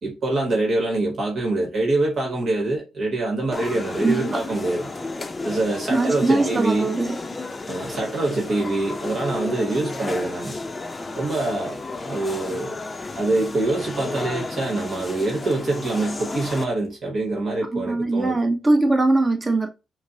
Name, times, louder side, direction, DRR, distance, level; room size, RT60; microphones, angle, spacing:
voice 1, 0.0-4.9 5.4-6.9 7.7-10.5 11.2-11.8 12.1-12.8 13.2-18.4, right 2 dB, 60° right, 1.1 m, -25 dB
sound 1, 3.5-16.6, left 3 dB, 30° left, 0.5 m, -32 dB
voice 2, 4.0-4.4 5.9-7.2 17.7-19.7, right 2 dB, 25° right, 1.0 m, -21 dB
5.0 x 2.1 x 2.7 m
supercardioid pair, 60°, 0 cm